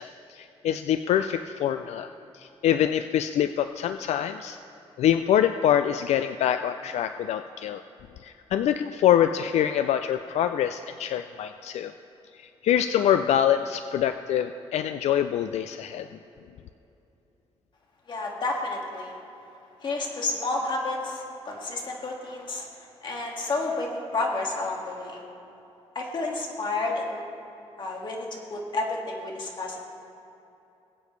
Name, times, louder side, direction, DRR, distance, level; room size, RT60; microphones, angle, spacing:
voice 1, 0.0-4.6 5.0-7.8 8.2-11.9 12.3-16.1, left 10 dB, 85° left, 10 dB, 0.4 m, -25 dB
voice 2, 18.1-19.2 19.8-25.2 25.9-27.2 27.8-29.8, left 2 dB, 45° left, 0 dB, 2.0 m, -31 dB
21.0 x 8.5 x 3.2 m, 2.9 s
cardioid pair, 120°, 11 cm